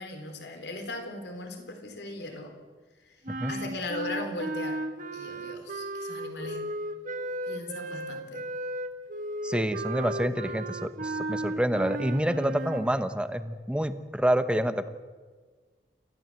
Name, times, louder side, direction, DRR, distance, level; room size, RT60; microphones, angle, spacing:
voice 1, 0.0-2.5 3.1-3.2 3.5-4.8 5.1-6.6 7.4-8.4, left 2 dB, 70° left, 5 dB, 3.9 m, -38 dB
sound 1, 3.2-12.9, right 1 dB, 50° right, 2.0 m, -35 dB
voice 2, 9.4-14.9, right 1 dB, 5° right, 10 dB, 1.1 m, -27 dB
29.5 x 15.0 x 7.7 m, 1.4 s
head